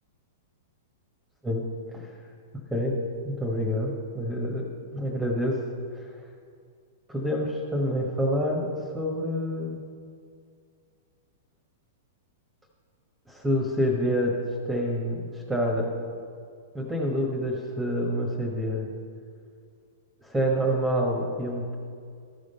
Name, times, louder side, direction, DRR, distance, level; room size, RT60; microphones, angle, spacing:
voice 1, 1.4-2.1 2.7-2.9 3.2-4.6 4.9-5.6 6.0-6.1 7.1-8.7 8.9-9.8 13.3-14.4 14.6-15.9 16.7-18.9 20.2-21.8, equal, 5° right, -1 dB, 1.3 m, -27 dB
13.5 x 5.1 x 5.6 m, 2.2 s
hypercardioid pair, 120°, 0 cm